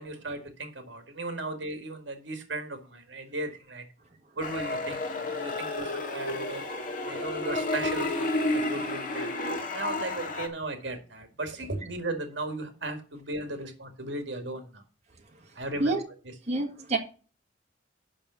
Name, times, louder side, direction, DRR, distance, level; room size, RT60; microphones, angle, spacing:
voice 1, 0.0-3.9 4.4-6.6 7.0-9.3 9.7-14.8 15.6-16.0, right 2 dB, 70° right, 1.9 m, -36 dB
sound 1, 4.4-10.5, left 2 dB, 45° left, 1.9 m, -31 dB
voice 2, 16.5-17.0, right 2 dB, 35° right, 1.8 m, -27 dB
8.7 x 6.0 x 6.8 m
head